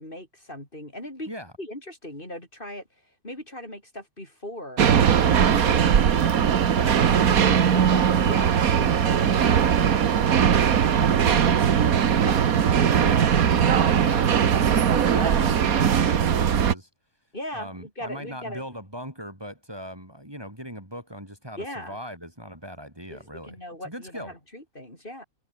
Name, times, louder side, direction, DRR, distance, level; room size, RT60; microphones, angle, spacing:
voice 1, 0.0-1.3 1.6-4.9 5.2-6.3 7.7-10.1 10.4-12.5 15.1-15.6 17.3-18.7 21.6-22.0 23.1-25.2, left 1 dB, 35° left, 7.3 m, -39 dB
sound 1, 4.8-16.7, right 8 dB, 75° right, 1.7 m, -20 dB
voice 2, 6.7-8.4 12.9-16.9 17.5-23.6 23.8-24.3, equal, 15° right, 6.2 m, -39 dB
omnidirectional pair, 1.5 m